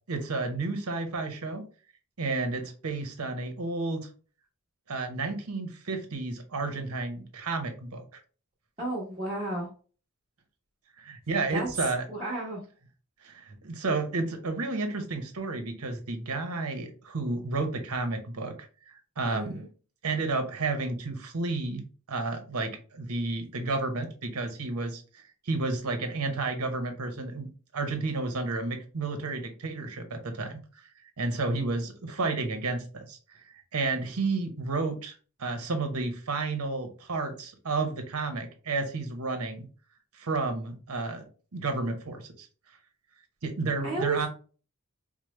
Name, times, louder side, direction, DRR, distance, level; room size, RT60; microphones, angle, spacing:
voice 1, 0.1-1.6 2.2-4.1 4.9-8.0 11.0-12.0 13.2-18.6 19.2-19.6 20.0-21.8 22.1-30.6 31.2-33.2 33.7-35.1 35.4-39.7 40.1-41.3 41.5-42.5 43.4-44.3, right 3 dB, 85° right, 6 dB, 0.8 m, -31 dB
voice 2, 8.8-9.7 11.5-12.6 19.3-19.7 43.8-44.2, right 2 dB, 30° right, -10 dB, 1.2 m, -33 dB
4.7 x 2.1 x 3.1 m, 0.38 s
head